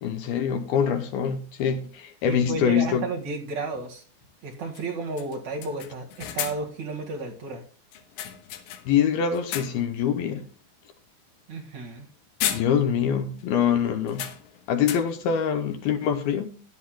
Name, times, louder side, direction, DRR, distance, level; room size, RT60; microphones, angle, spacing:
voice 1, 0.0-3.1 8.9-10.5 12.5-14.3 14.7-16.6, left 8 dB, 75° left, 2.5 m, -24 dB
sound 1, 1.6-1.7 3.7-3.9 4.2-4.3 4.7-4.9 5.2-6.8 7.9-9.0 9.3-10.0 10.4-10.6 11.9-12.1 12.4-13.1 13.4-13.5 14.1-15.3, left 11 dB, 90° left, 3.6 m, -35 dB
voice 2, 2.2-4.0 4.4-7.6 11.5-12.1, right 3 dB, 50° right, 2.7 m, -32 dB
17.0 x 11.0 x 2.3 m
omnidirectional pair, 4.9 m